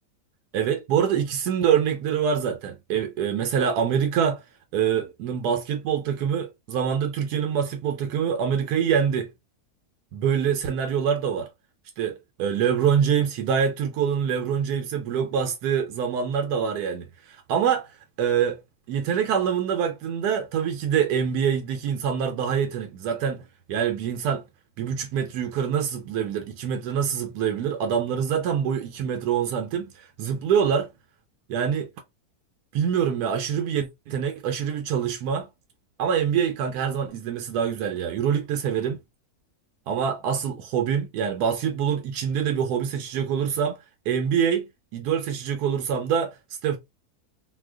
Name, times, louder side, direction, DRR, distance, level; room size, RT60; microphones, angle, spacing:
voice 1, 0.5-4.4 4.7-9.3 10.1-11.5 12.0-17.9 18.2-18.6 18.9-23.4 23.7-24.4 24.8-30.9 31.5-31.9 32.7-35.5 36.0-39.0 39.9-43.8 44.1-46.4 46.6-46.8, right 8 dB, 85° right, 1.1 m, -25 dB
2.7 x 2.2 x 3.4 m
omnidirectional pair, 1.6 m